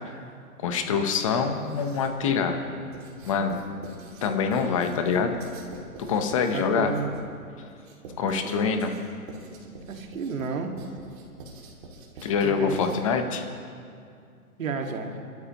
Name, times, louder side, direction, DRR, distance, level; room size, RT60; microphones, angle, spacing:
voice 1, 0.6-2.6 3.2-3.6 4.2-5.4 6.1-6.9 8.2-8.9 12.2-13.4, left 6 dB, 20° left, 6 dB, 0.9 m, -25 dB
Writing, 1.5-2.3 2.9-13.2, right 2 dB, 35° right, 2.6 m, -45 dB
voice 2, 6.5-7.2 8.4-8.9 9.9-10.7 12.2-13.0 14.6-15.1, right 5 dB, 60° right, 3 dB, 2.1 m, -32 dB
28.5 x 13.0 x 3.0 m, 2.3 s
hypercardioid pair, 160°, 45 cm